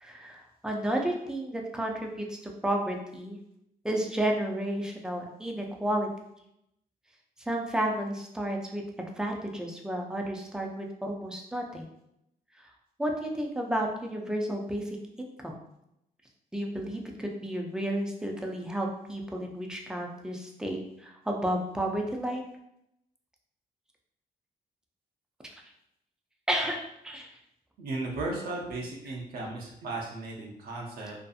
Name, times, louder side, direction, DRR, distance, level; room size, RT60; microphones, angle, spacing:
voice 1, 0.0-3.4 3.8-6.1 7.5-8.8 9.2-11.8 13.0-15.5 16.5-22.4 26.5-27.3 29.0-29.1, right 1 dB, 5° right, 1 dB, 0.4 m, -32 dB
voice 2, 27.8-31.1, right 2 dB, 75° right, -2 dB, 0.6 m, -35 dB
2.6 x 2.5 x 2.3 m, 0.80 s
cardioid pair, 105°, 15 cm